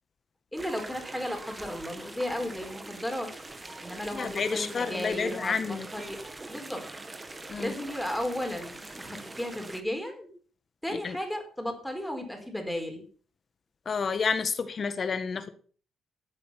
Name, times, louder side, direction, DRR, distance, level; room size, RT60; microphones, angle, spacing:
voice 1, 0.5-3.3 3.8-6.2 6.5-6.9 7.6-10.3 10.8-13.0, left 1 dB, 5° left, 4 dB, 4.6 m, -34 dB
sound 1, 0.6-9.8, right 2 dB, 20° right, 1.8 m, -43 dB
voice 2, 4.1-5.9 7.5-7.7 11.0-11.2 13.8-15.5, left 5 dB, 45° left, 11 dB, 1.6 m, -30 dB
14.0 x 8.5 x 5.9 m, 0.42 s
cardioid pair, 90°, 0 cm